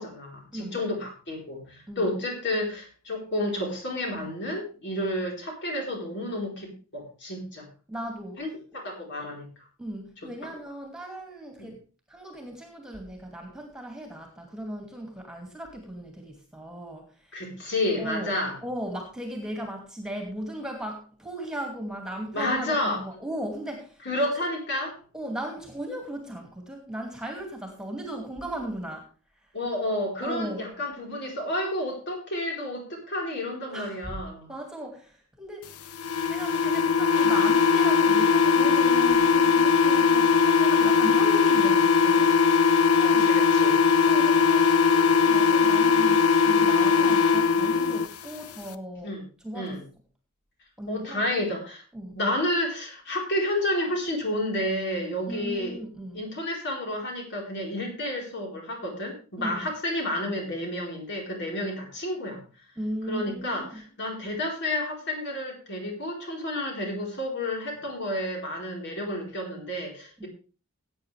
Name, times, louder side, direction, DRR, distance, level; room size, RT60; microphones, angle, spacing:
voice 1, 0.0-7.7 8.4-9.5 11.6-11.7 17.3-18.5 22.3-23.0 24.1-24.9 29.5-34.5 43.0-43.8 44.3-44.4 47.0-47.1 49.0-49.2 49.5-49.8 50.9-51.8 52.1-55.8 56.1-62.4 63.1-63.6 64.0-70.3, left 1 dB, 55° left, 0 dB, 4.4 m, -30 dB
voice 2, 7.9-8.4 9.8-11.8 12.1-17.5 18.0-24.1 25.1-29.6 30.2-30.6 33.7-34.2 34.5-35.9 36.3-43.3 44.1-49.8 50.8-51.3 51.9-52.2 55.3-56.3 59.4-59.7 62.8-63.8 70.2-70.3, right 1 dB, 5° right, 2 dB, 2.5 m, -37 dB
sound 1, 36.0-48.1, left 5 dB, 80° left, 0.7 m, -20 dB
17.5 x 8.7 x 3.4 m, 0.36 s
head